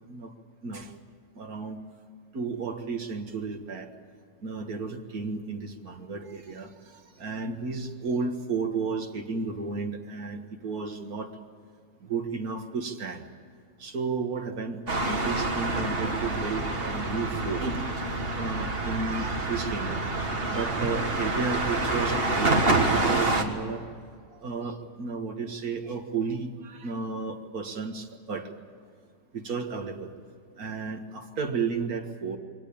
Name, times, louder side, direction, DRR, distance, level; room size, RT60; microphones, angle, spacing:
voice 1, 0.6-0.9 1.3-1.8 2.3-3.9 4.4-11.3 12.0-13.3 13.8-17.7 18.4-23.8 24.3-28.5 29.3-30.1 30.6-32.4, right 4 dB, 65° right, 4 dB, 2.2 m, -33 dB
sound 1, 14.9-23.4, right 2 dB, 35° right, 1.9 m, -27 dB
22.5 x 18.5 x 8.7 m, 2.1 s
omnidirectional pair, 1.7 m